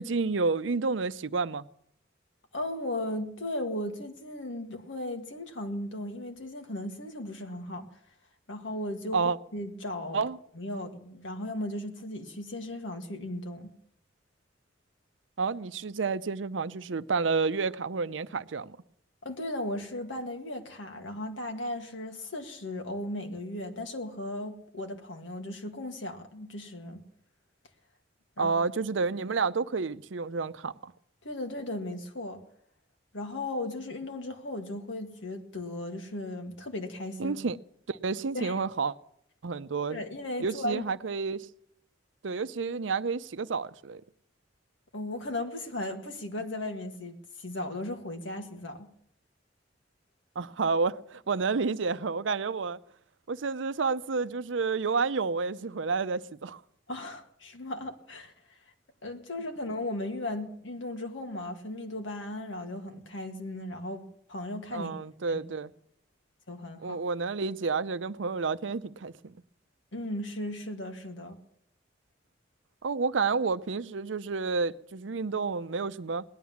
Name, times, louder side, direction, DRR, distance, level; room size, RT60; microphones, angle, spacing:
voice 1, 0.0-1.7 9.1-9.4 10.1-10.4 15.4-18.8 28.4-30.9 37.2-37.6 37.9-38.9 39.4-40.0 40.4-41.5 42.2-44.0 50.4-52.8 53.3-56.6 64.7-65.7 66.8-69.3 72.8-76.2, right 4 dB, 80° right, 0.6 m, -30 dB
voice 2, 2.5-7.9 8.5-10.2 10.6-13.7 19.2-27.0 28.4-28.5 31.2-32.4 33.1-37.4 38.3-38.5 39.9-40.9 44.9-48.9 56.9-58.3 59.0-64.0 64.3-64.9 65.3-65.4 66.5-67.0 69.9-71.4, left 1 dB, 85° left, 2.1 m, -36 dB
18.0 x 11.0 x 7.2 m
head